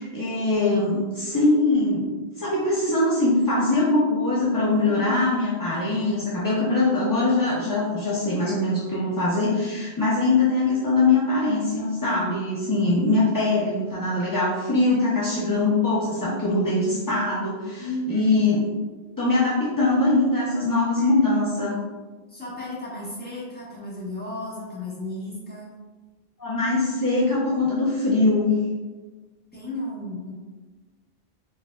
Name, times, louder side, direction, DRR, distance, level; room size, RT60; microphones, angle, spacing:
voice 1, 0.1-18.7 19.2-21.8 26.4-28.6, left 2 dB, 35° left, -7 dB, 0.3 m, -22 dB
voice 2, 4.8-5.3 17.8-18.3 22.3-25.7 29.5-30.3, left 1 dB, 10° left, -8 dB, 1.0 m, -33 dB
4.4 x 2.6 x 2.2 m, 1.3 s
omnidirectional pair, 1.0 m